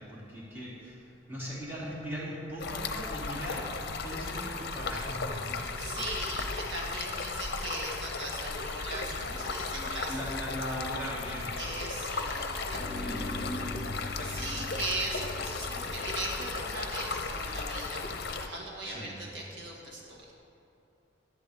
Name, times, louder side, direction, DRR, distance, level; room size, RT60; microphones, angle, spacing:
voice 1, 0.0-5.6 10.0-11.8 13.0-14.8 18.8-19.3, equal, 10° right, -8 dB, 2.7 m, -39 dB
Stream, 2.6-18.5, left 4 dB, 55° left, 0.7 m, -36 dB
voice 2, 5.8-10.1 11.6-12.9 14.2-20.2, right 2 dB, 70° right, -2 dB, 1.7 m, -39 dB
sound 1, 12.7-17.9, left 2 dB, 25° right, 2.1 m, -44 dB
14.0 x 11.0 x 3.5 m, 2.8 s
head